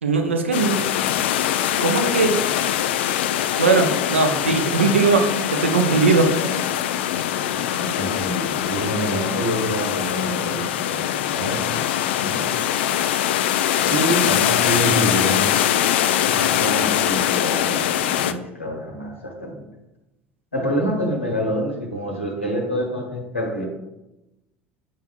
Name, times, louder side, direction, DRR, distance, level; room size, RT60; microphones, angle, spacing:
voice 1, 0.0-0.8 1.8-2.4 3.6-6.3, right 4 dB, 80° right, 4 dB, 0.7 m, -19 dB
sound 1, 0.5-18.3, left 11 dB, 65° left, 0.3 m, -22 dB
voice 2, 7.3-11.8 12.2-12.5 13.8-15.6 16.2-19.7 20.5-23.6, equal, 85° left, 0 dB, 1.2 m, -27 dB
8.2 x 5.6 x 2.4 m, 0.95 s
figure-of-eight pair, 65°, 6 cm